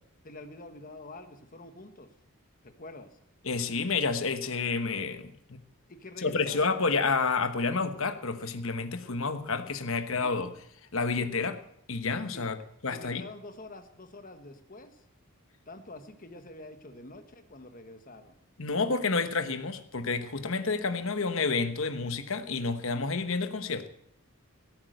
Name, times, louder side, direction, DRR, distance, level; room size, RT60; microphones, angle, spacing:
voice 1, 0.2-2.1 2.6-3.1 5.9-6.8 10.2-10.3 12.3-12.4 12.9-15.0 15.7-18.3, left 2 dB, 40° left, 8 dB, 1.4 m, -46 dB
voice 2, 3.4-5.6 6.2-10.5 10.9-11.6 11.9-12.6 12.8-13.2 18.6-23.9, left 4 dB, 65° left, 9 dB, 1.2 m, -29 dB
17.0 x 8.6 x 7.8 m, 0.74 s
head